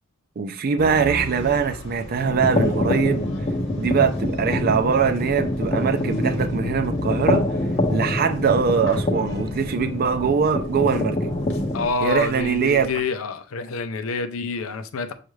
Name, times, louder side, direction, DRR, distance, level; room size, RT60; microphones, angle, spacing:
voice 1, 0.4-3.2 3.8-7.5 7.9-11.2 12.0-12.9, right 6 dB, 45° right, 0.4 m, -22 dB
sound 1, 0.8-13.0, equal, 60° left, 1.1 m, -36 dB
sound 2, 2.2-11.9, left 1 dB, 25° left, 0.5 m, -25 dB
voice 2, 11.7-15.1, left 4 dB, 80° left, 0.5 m, -27 dB
6.3 x 2.4 x 3.1 m
head